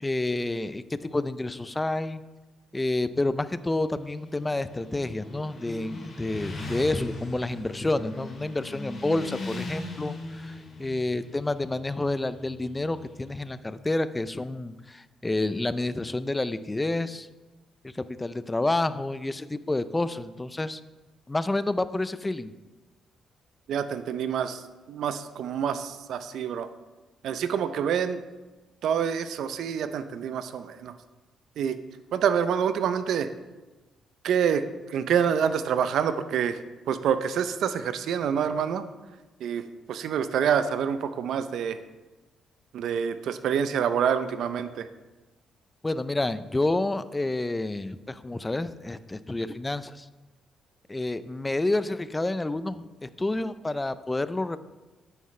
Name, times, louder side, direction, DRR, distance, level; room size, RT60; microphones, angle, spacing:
voice 1, 0.0-2.2 2.7-17.3 17.8-20.8 21.3-22.5 45.8-50.1 50.9-54.6, left 2 dB, 15° left, 14 dB, 0.4 m, -29 dB
Motorcycle, 3.6-13.4, left 2 dB, 45° left, 2.8 m, -40 dB
voice 2, 23.7-26.7 27.2-28.2 28.8-30.9 31.6-31.8 32.1-33.3 34.2-36.6 36.9-38.8 39.4-41.8 42.7-44.9, right 8 dB, 75° right, 11 dB, 0.6 m, -27 dB
9.4 x 9.2 x 3.2 m, 1.2 s
cardioid pair, 90°, 0 cm